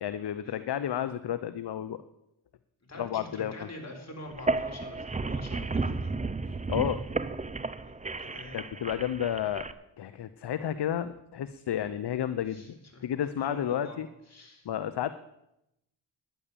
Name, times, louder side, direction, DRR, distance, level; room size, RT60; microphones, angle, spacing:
voice 1, 0.0-2.0 3.0-3.7 6.5-7.0 8.5-9.7 10.0-12.8 13.0-14.1 14.6-15.1, left 10 dB, 55° left, 13 dB, 0.7 m, -31 dB
voice 2, 2.9-6.1 7.8-8.6 12.5-13.1 13.4-14.0 14.3-14.7, left 1 dB, 30° left, 1 dB, 3.9 m, -45 dB
sound 1, 4.3-9.7, right 3 dB, 15° right, 0.6 m, -33 dB
11.0 x 10.0 x 6.8 m, 0.86 s
cardioid pair, 55°, 50 cm